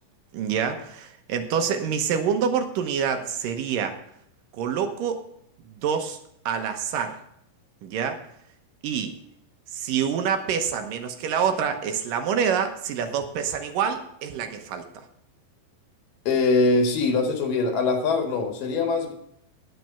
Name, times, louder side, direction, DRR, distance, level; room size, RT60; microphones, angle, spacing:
voice 1, 0.3-4.0 4.6-5.2 5.7-6.2 6.5-7.2 7.8-8.3 8.8-9.1 9.7-15.1, right 7 dB, 80° right, 7 dB, 2.6 m, -26 dB
voice 2, 16.3-19.1, left 3 dB, 75° left, 5 dB, 3.2 m, -22 dB
9.4 x 9.3 x 5.8 m, 0.72 s
omnidirectional pair, 4.0 m